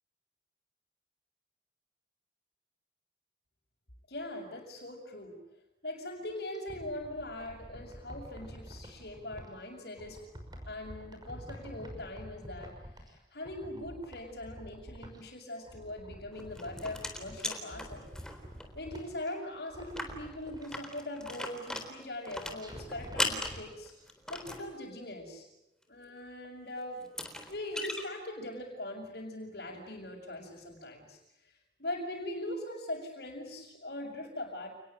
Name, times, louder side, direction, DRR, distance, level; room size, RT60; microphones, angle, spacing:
voice 1, 4.1-5.4 5.8-10.3 10.7-18.1 18.7-23.9 24.3-25.5 25.9-27.1 27.5-34.7, left 1 dB, 65° left, -4 dB, 6.6 m, -41 dB
sound 1, 6.3-9.5 10.0-13.2 13.4-15.3 15.6-17.5 17.8-19.3 19.7-20.7 22.6-23.6 24.0-24.1, equal, 25° right, 5.9 m, -48 dB
sound 2, 16.3-18.7 19.0-19.1 19.3-19.4 19.8-24.7 26.4-26.5 27.0-28.0, left 1 dB, 5° left, 3.8 m, -38 dB
29.5 x 20.5 x 9.2 m, 0.89 s
head